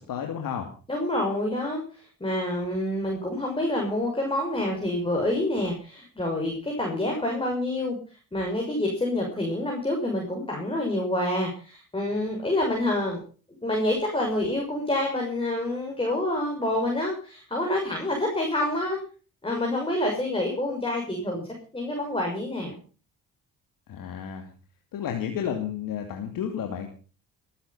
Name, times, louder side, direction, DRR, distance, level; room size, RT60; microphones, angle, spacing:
voice 1, 0.0-0.7 23.9-24.5 24.9-26.9, left 8 dB, 70° left, 4 dB, 2.6 m, -32 dB
voice 2, 0.9-13.2 13.5-19.0 19.4-22.8, left 1 dB, 15° left, 0 dB, 6.5 m, -27 dB
19.5 x 10.5 x 5.6 m, 0.38 s
cardioid pair, 75°, 34 cm